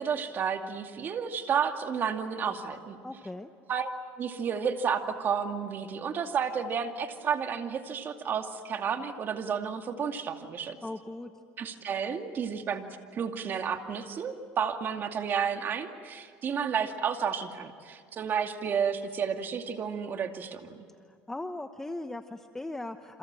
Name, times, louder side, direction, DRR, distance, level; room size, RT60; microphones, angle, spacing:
voice 1, 0.0-3.0 3.7-3.9 4.2-10.8 11.6-20.8, right 7 dB, 40° right, 5 dB, 2.4 m, -31 dB
voice 2, 3.0-3.5 10.8-11.3 21.1-23.2, left 2 dB, 10° left, 7 dB, 1.0 m, -38 dB
28.5 x 27.0 x 7.6 m, 2.2 s
cardioid pair, 115°, 5 cm